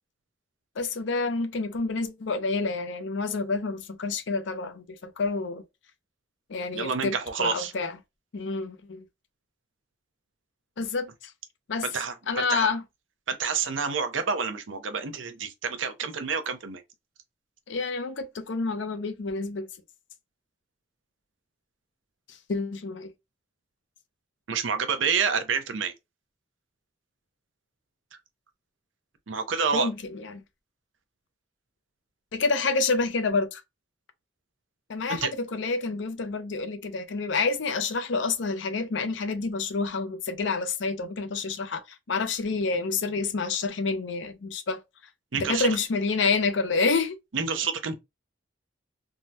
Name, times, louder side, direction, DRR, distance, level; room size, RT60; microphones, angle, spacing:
voice 1, 0.8-5.6 6.5-7.9 8.3-9.0 10.8-11.3 11.7-11.9 12.3-12.8 17.7-19.7 22.5-23.1 29.7-30.4 32.3-33.6 34.9-41.8 42.1-44.8 45.3-47.2, left 4 dB, 70° left, 0.5 m, -28 dB
voice 2, 6.7-7.7 11.8-12.7 13.3-16.8 24.5-25.9 29.3-29.9 35.1-35.3 45.3-45.7 47.3-48.0, right 5 dB, 85° right, 0.6 m, -28 dB
3.6 x 2.1 x 2.7 m
head